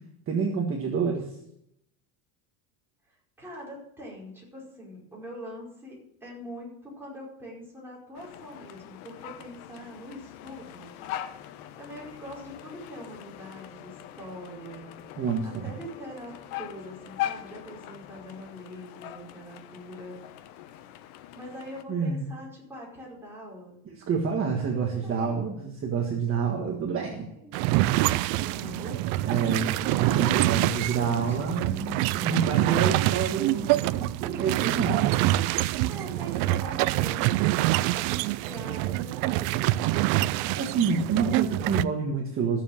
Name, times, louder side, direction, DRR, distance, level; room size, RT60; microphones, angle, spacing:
voice 1, 0.3-1.4 15.2-15.7 21.9-22.2 24.1-27.3 29.3-33.7 34.2-35.1 40.6-42.6, right 5 dB, 30° right, 1 dB, 1.6 m, -28 dB
voice 2, 3.4-10.9 11.8-20.2 21.3-23.8 25.0-25.5 27.3-29.4 29.6-31.8 33.5-34.1 35.2-35.5 35.9-40.6, equal, 5° right, -5 dB, 5.0 m, -43 dB
sound 1, 8.1-21.8, left 12 dB, 85° left, 1.1 m, -41 dB
sound 2, 11.0-18.3, left 8 dB, 65° left, 4.6 m, -52 dB
sound 3, 27.5-41.8, right 17 dB, 55° right, 0.5 m, -26 dB
14.0 x 7.4 x 7.2 m, 0.77 s
cardioid pair, 150°, 43 cm